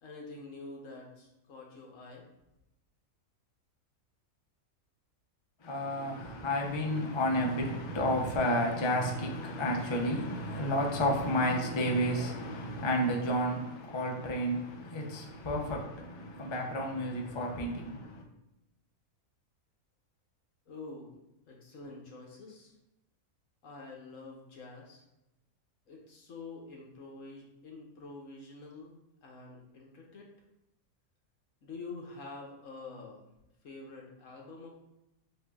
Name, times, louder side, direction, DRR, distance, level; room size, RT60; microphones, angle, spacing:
voice 1, 0.0-2.3 20.7-21.2 21.5-22.7 23.6-25.0 25.9-29.0 29.2-30.3 31.6-33.3 33.6-34.7, left 3 dB, 65° left, 1.3 m, -47 dB
voice 2, 5.6-18.2, equal, 40° left, 0.4 m, -31 dB
7.6 x 2.6 x 2.3 m
omnidirectional pair, 1.5 m